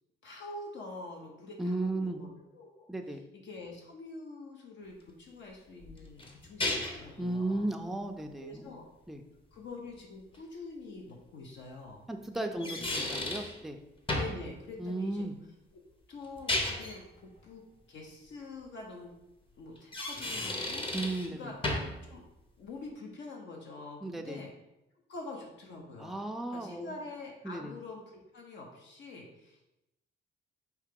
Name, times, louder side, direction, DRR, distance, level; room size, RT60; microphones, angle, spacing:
voice 1, 0.2-7.7 8.4-8.9 9.5-12.0 12.4-13.0 14.1-15.2 15.7-15.8 16.1-17.6 17.9-19.2 19.6-20.9 21.3-21.5 22.0-22.2 22.6-24.5 25.1-26.2 26.5-29.7, left 3 dB, 65° left, 0 dB, 0.8 m, -46 dB
voice 2, 1.6-2.2 2.9-3.2 7.2-8.7 9.1-9.2 12.1-12.7 13.1-13.8 14.8-15.4 20.9-21.5 24.0-24.4 26.0-26.9 27.4-27.7, right 2 dB, ahead, 4 dB, 0.4 m, -35 dB
sound 1, 5.8-7.1 10.3-10.4 12.4-13.6 14.1-14.4 16.2-17.0 19.8-21.3 21.6-22.0, left 1 dB, 25° left, 0.8 m, -33 dB
4.6 x 2.8 x 3.6 m, 0.91 s
cardioid pair, 90°, 20 cm